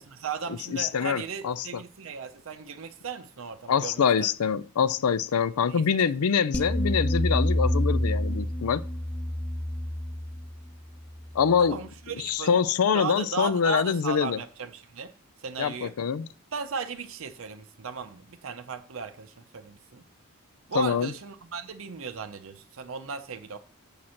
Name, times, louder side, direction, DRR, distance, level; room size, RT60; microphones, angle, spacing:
voice 1, 0.0-4.3 5.7-6.1 11.6-12.6 12.9-15.1 15.4-15.9 16.5-20.0 20.7-23.6, right 5 dB, 65° right, 0.6 m, -36 dB
voice 2, 0.7-1.7 3.7-8.8 11.3-11.8 12.2-14.4 15.6-16.3 20.7-21.1, left 6 dB, 85° left, 0.5 m, -25 dB
sound 1, 6.5-11.8, left 1 dB, 5° left, 0.3 m, -28 dB
7.3 x 4.3 x 6.3 m
head